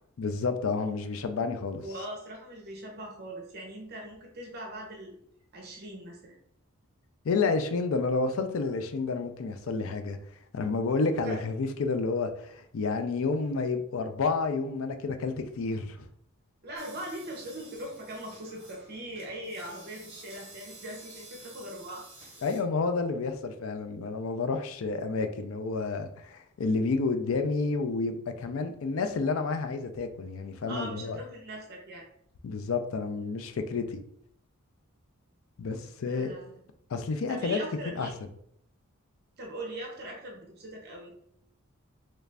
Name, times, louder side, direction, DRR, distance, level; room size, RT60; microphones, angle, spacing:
voice 1, 0.2-1.8 7.2-10.2 10.5-16.1 22.4-31.2 32.4-34.0 35.6-36.3 36.9-37.6 37.9-38.1, left 4 dB, 65° left, 8 dB, 0.4 m, -30 dB
voice 2, 1.8-5.2 5.5-6.4 11.1-11.4 16.6-22.1 24.0-24.1 30.7-32.1 36.0-36.6 37.3-38.2 39.4-41.1, right 1 dB, 50° right, 0 dB, 0.7 m, -40 dB
sound 1, 16.8-22.6, right 2 dB, 30° right, 1.1 m, -51 dB
3.2 x 2.4 x 3.3 m, 0.70 s
head